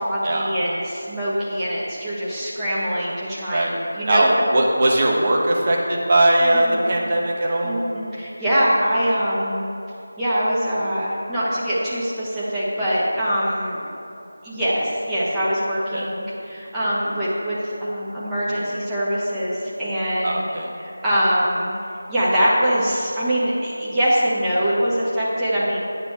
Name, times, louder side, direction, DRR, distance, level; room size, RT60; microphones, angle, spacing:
voice 1, 0.0-4.3 6.4-6.9 7.6-9.7 10.2-13.8 14.4-17.6 17.8-20.4 20.8-21.7 22.1-25.8, equal, 10° right, -11 dB, 1.4 m, -23 dB
voice 2, 4.1-7.7 15.9-16.0 20.2-20.7, right 1 dB, 35° right, -2 dB, 1.4 m, -19 dB
9.9 x 6.9 x 4.5 m, 2.8 s
figure-of-eight pair, 165°, 0 cm